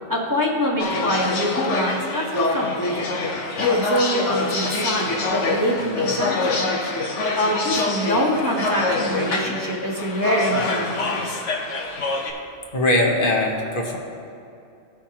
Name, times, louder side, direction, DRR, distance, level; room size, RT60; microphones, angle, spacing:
voice 1, 0.1-3.0 3.6-6.9 7.4-11.3, equal, 15° right, -3 dB, 1.1 m, -25 dB
sound 1, 0.8-12.3, left 3 dB, 85° left, 1.3 m, -25 dB
voice 2, 12.7-14.0, left 1 dB, 50° left, 0 dB, 1.2 m, -20 dB
16.0 x 5.6 x 2.9 m, 2.7 s
omnidirectional pair, 1.2 m